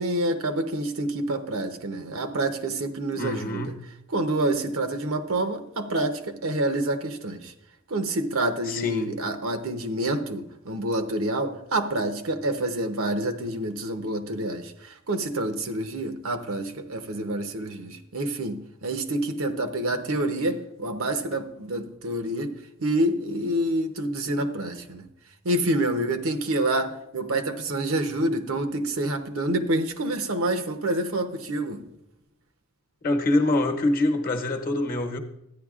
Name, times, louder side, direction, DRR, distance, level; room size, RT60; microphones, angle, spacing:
voice 1, 0.0-3.7 4.1-7.5 7.9-25.1 25.4-31.8, right 1 dB, 90° right, 0.8 m, -27 dB
voice 2, 3.1-3.8 8.7-9.1 33.0-35.2, left 2 dB, 45° left, 0.9 m, -25 dB
13.5 x 9.7 x 2.4 m
head